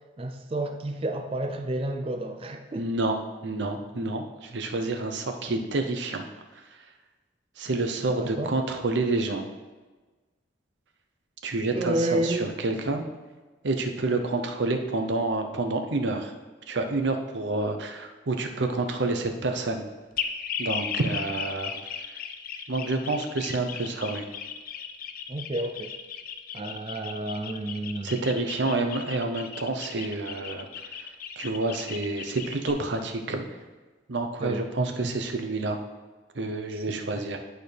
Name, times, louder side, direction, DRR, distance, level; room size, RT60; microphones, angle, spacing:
voice 1, 0.2-2.9 8.2-8.6 11.7-12.5 25.3-25.9 26.5-28.1 34.4-35.1 36.7-37.2, right 1 dB, 30° right, 5 dB, 0.4 m, -31 dB
voice 2, 2.8-6.2 7.6-9.4 11.4-13.1 13.6-16.3 16.7-19.9 20.6-21.7 22.7-24.2 28.0-30.7 31.4-33.5 34.1-35.8 36.3-37.4, right 2 dB, 70° right, 5 dB, 0.7 m, -28 dB
sound 1, 20.2-32.7, left 7 dB, 45° left, 0.4 m, -36 dB
11.0 x 4.3 x 3.3 m, 1.3 s
head